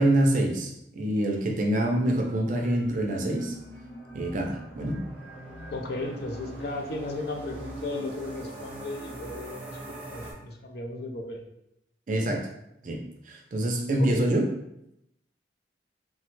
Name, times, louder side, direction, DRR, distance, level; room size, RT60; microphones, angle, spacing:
voice 1, 0.0-3.6 4.1-5.0 12.1-12.5 12.8-13.0 13.3-14.5, right 1 dB, 45° right, 2 dB, 0.4 m, -25 dB
sound 1, 2.2-9.9, right 1 dB, 90° left, 0.9 m, -46 dB
sound 2, 2.5-10.3, right 2 dB, 10° right, 0.7 m, -43 dB
voice 2, 5.7-11.4 14.0-14.3, left 2 dB, 60° left, 3 dB, 0.4 m, -35 dB
3.2 x 2.1 x 3.0 m, 0.80 s
head